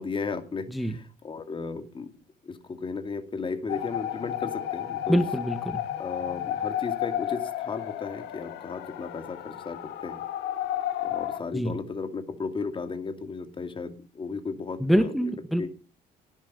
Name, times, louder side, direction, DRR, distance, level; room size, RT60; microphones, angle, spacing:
voice 1, 0.0-2.1 2.4-5.2 6.0-10.2 11.0-15.1 15.6-15.7, left 4 dB, 30° left, 9 dB, 2.4 m, -35 dB
sound 1, 3.7-11.4, left 11 dB, 85° left, 2.1 m, -32 dB
voice 2, 5.1-5.8 11.5-11.7 14.8-15.6, equal, ahead, 8 dB, 1.7 m, -25 dB
18.0 x 12.0 x 5.5 m, 0.37 s
cardioid pair, 110°, 17 cm